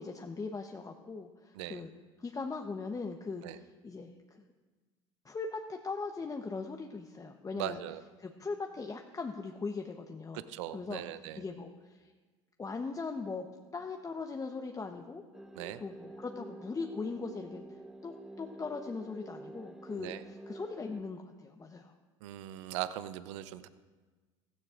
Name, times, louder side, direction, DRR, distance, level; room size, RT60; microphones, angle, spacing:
voice 1, 0.0-1.9 2.2-4.4 5.2-7.8 8.2-10.4 10.7-11.0 11.3-12.1 12.6-13.5 13.7-15.2 15.8-17.6 18.0-21.9, left 4 dB, 20° left, 3 dB, 0.9 m, -40 dB
voice 2, 7.6-8.0 10.3-11.4 15.5-15.8 20.0-20.2 22.2-23.7, right 13 dB, 70° right, 14 dB, 0.7 m, -39 dB
sound 1, 15.3-21.0, right 1 dB, 5° right, 0.6 m, -48 dB
16.0 x 15.5 x 2.5 m, 1.4 s
hypercardioid pair, 75°, 16 cm